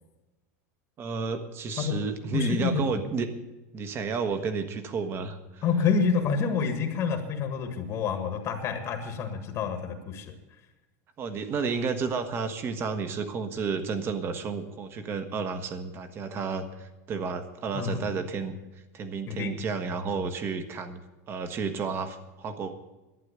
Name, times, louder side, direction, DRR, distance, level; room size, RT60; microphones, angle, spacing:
voice 1, 1.0-3.3 3.7-5.6 11.2-18.5 18.9-21.0 21.3-22.8, right 5 dB, 30° right, 9 dB, 1.3 m, -31 dB
voice 2, 2.3-3.0 5.6-10.3 17.7-18.0 19.3-19.6, left 6 dB, 35° left, 7 dB, 1.6 m, -28 dB
11.5 x 9.1 x 8.1 m, 1.1 s
supercardioid pair, 150°, 8 cm